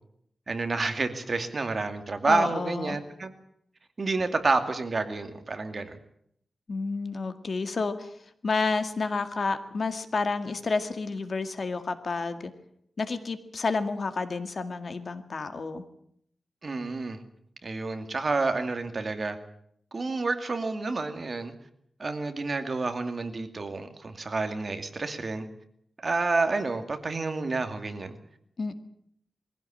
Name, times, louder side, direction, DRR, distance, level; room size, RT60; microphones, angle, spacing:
voice 1, 0.5-3.3 4.0-6.0 16.6-17.2 17.6-19.4 19.9-21.5 22.0-25.4 26.0-28.2, right 3 dB, 40° right, 7 dB, 2.4 m, -29 dB
voice 2, 2.2-3.0 6.7-8.1 8.4-12.5 13.0-15.8 28.6-28.8, left 4 dB, 50° left, 9 dB, 2.0 m, -30 dB
22.5 x 16.0 x 8.9 m, 0.70 s
wide cardioid pair, 130°, 0 cm